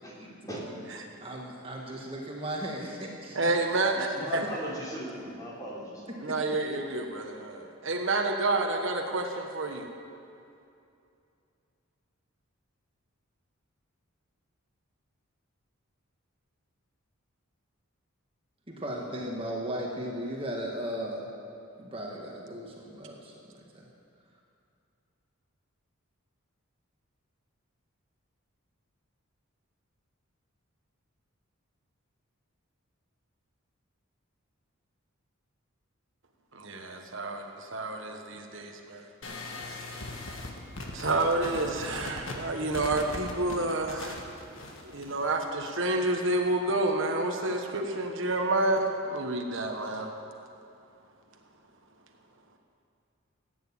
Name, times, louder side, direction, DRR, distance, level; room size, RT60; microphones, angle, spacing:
voice 1, 0.0-0.9 3.9-6.0, equal, 15° left, -5 dB, 3.2 m, -38 dB
voice 2, 1.2-3.4 4.4-4.5 6.1-6.6 18.7-21.3 21.8-23.3 23.7-23.9, right 1 dB, 25° right, -2 dB, 1.6 m, -36 dB
voice 3, 3.3-4.4 6.2-9.9 36.5-39.1 39.7-39.8 40.9-44.2 44.9-50.1, right 2 dB, 60° right, 3 dB, 1.3 m, -29 dB
sound 1, 39.2-45.4, left 2 dB, 60° left, 1.7 m, -40 dB
15.0 x 9.4 x 8.7 m, 2.6 s
head